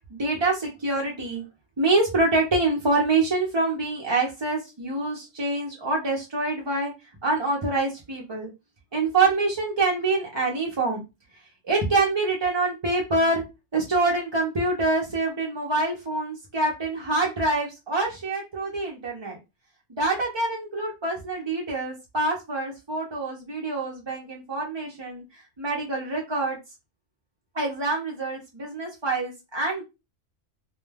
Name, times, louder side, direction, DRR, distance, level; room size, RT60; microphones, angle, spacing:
voice 1, 0.1-1.4 1.8-6.9 7.2-8.5 8.9-11.0 11.6-13.4 13.7-19.4 20.0-26.6 27.5-29.8, right 2 dB, 35° right, -1 dB, 0.4 m, -26 dB
2.2 x 2.2 x 3.2 m, 0.24 s
omnidirectional pair, 1.3 m